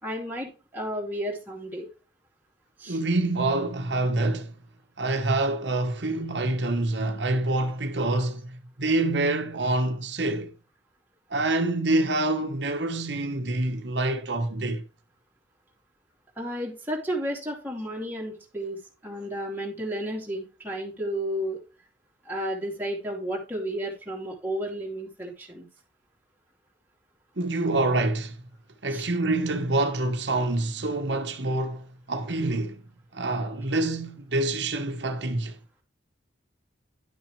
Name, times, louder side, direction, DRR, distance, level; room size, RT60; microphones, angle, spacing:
voice 1, 0.0-1.9 2.8-3.0 16.4-21.6 22.2-25.7 28.9-29.1, equal, 10° right, 2.4 m, -32 dB
voice 2, 2.9-4.5 5.0-10.5 11.3-14.8 27.4-28.3 28.8-32.8 33.1-35.6, right 2 dB, 70° right, 1.2 m, -26 dB
11.0 x 6.1 x 3.2 m
head